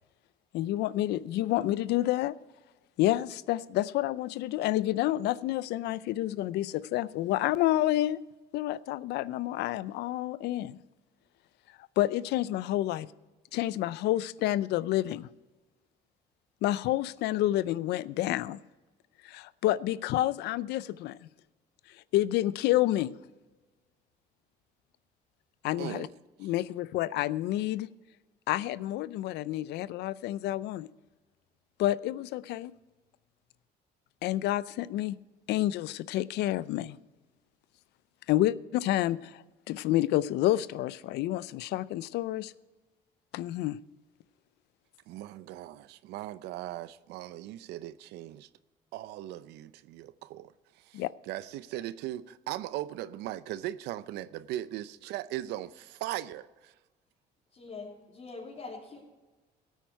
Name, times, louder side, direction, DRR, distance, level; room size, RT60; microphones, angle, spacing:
voice 1, 0.5-2.4 3.0-8.2 8.5-10.8 12.0-13.1 13.5-15.3 16.6-18.6 19.2-21.3 22.1-23.2 25.6-26.1 26.4-27.9 28.5-30.9 31.8-32.7 34.2-35.2 35.5-37.0 38.3-42.5 43.3-43.8 50.9-51.1, left 14 dB, 80° left, 0.5 m, -29 dB
voice 2, 25.8-26.1 26.4-26.5 45.1-48.5 48.9-56.7, right 14 dB, 90° right, 0.6 m, -39 dB
voice 3, 57.5-59.0, left 3 dB, 45° left, 3.2 m, -43 dB
17.0 x 9.2 x 4.6 m
cardioid pair, 110°, 17 cm